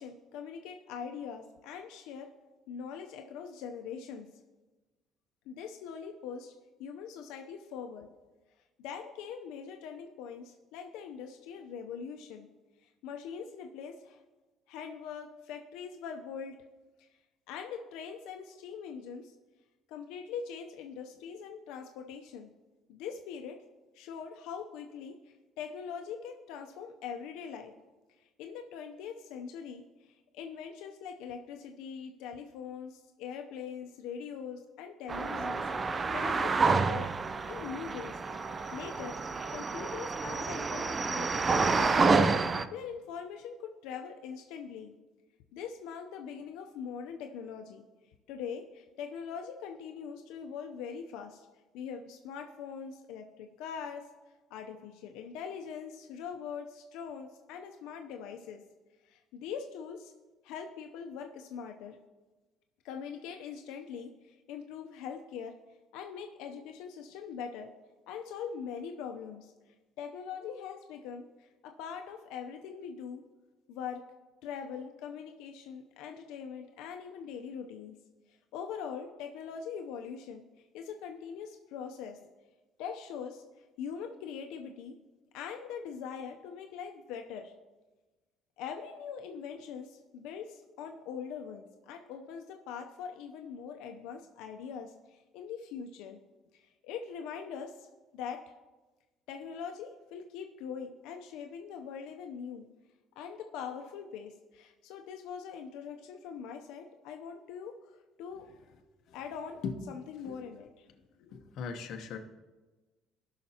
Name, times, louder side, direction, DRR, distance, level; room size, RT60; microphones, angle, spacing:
voice 1, 0.0-2.3 2.7-4.3 5.5-6.5 6.8-8.1 8.8-12.5 12.8-14.2 14.7-16.6 17.5-19.3 19.9-22.5 22.9-23.6 23.9-27.7 28.2-37.1 37.5-38.2 38.7-39.2 39.5-44.9 45.5-47.8 48.3-51.5 51.7-54.0 54.5-58.6 59.0-60.1 60.4-62.0 62.8-65.5 65.9-67.7 68.1-69.5 70.0-73.2 73.7-74.0 74.4-78.0 78.3-82.2 82.8-83.4 83.8-85.0 85.3-87.5 88.6-96.2 96.5-97.9 98.1-98.4 99.3-102.7 103.2-108.5 109.1-109.6 109.9-110.9 111.2-111.4, left 7 dB, 85° left, 3 dB, 0.6 m, -42 dB
sound 1, 35.1-42.7, right 4 dB, 20° right, 0.3 m, -29 dB
voice 2, 111.3-112.2, left 6 dB, 55° left, 4 dB, 0.9 m, -38 dB
17.5 x 5.8 x 2.8 m, 1.2 s
cardioid pair, 155°, 0 cm